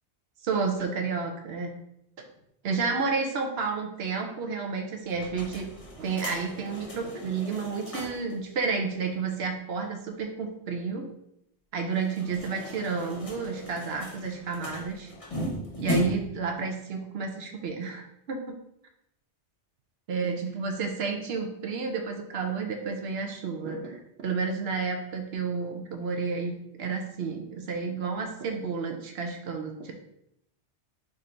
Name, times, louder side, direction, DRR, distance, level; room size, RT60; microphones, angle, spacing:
voice 1, 0.4-1.7 2.2-2.3 2.6-5.7 6.0-11.0 11.7-15.1 15.8-18.4 20.1-29.9, right 5 dB, 65° right, 4 dB, 0.8 m, -31 dB
sound 1, 5.1-8.4 8.7-8.8 9.0-9.1 11.9-16.4, equal, 30° left, 0.9 m, -36 dB
3.5 x 2.5 x 4.2 m, 0.77 s
omnidirectional pair, 1.2 m